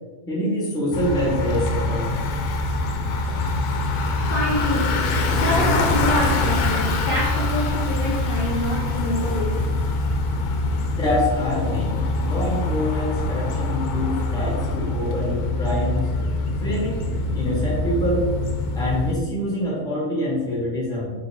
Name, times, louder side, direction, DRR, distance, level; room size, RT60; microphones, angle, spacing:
voice 1, 0.3-2.1 11.0-16.1 16.6-18.3 18.7-21.1, left 1 dB, 5° left, -6 dB, 0.8 m, -25 dB
Bicycle, 0.9-19.1, left 2 dB, 90° left, 1.1 m, -24 dB
voice 2, 4.2-9.6, left 1 dB, 45° left, -5 dB, 0.7 m, -26 dB
3.8 x 2.7 x 4.0 m, 1.4 s
omnidirectional pair, 1.6 m